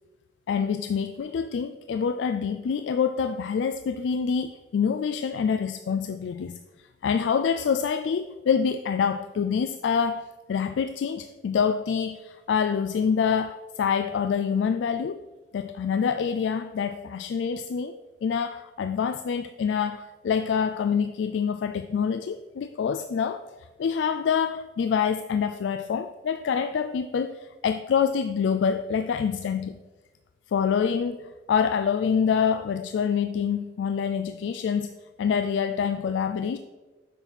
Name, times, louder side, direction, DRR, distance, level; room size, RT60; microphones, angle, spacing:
voice 1, 0.5-6.6 7.0-15.2 15.5-18.0 18.2-23.4 23.8-29.8 30.5-36.6, left 6 dB, 75° left, 10 dB, 0.3 m, -26 dB
8.1 x 5.9 x 4.0 m, 1.2 s
head